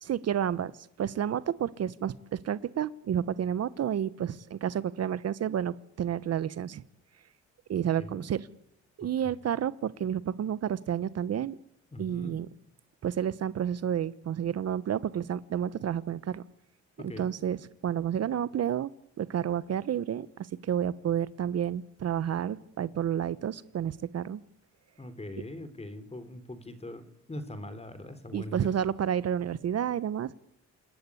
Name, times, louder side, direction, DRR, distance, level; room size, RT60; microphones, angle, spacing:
voice 1, 0.0-6.8 7.7-8.4 9.0-11.6 12.0-12.5 13.0-16.4 17.2-18.9 19.2-24.4 28.3-30.3, right 9 dB, 55° right, 17 dB, 0.9 m, -30 dB
voice 2, 9.0-9.4 11.9-12.4 17.0-17.3 25.0-28.8, left 1 dB, 20° left, 12 dB, 3.7 m, -42 dB
28.0 x 14.0 x 9.9 m, 0.76 s
cardioid pair, 90°, 30 cm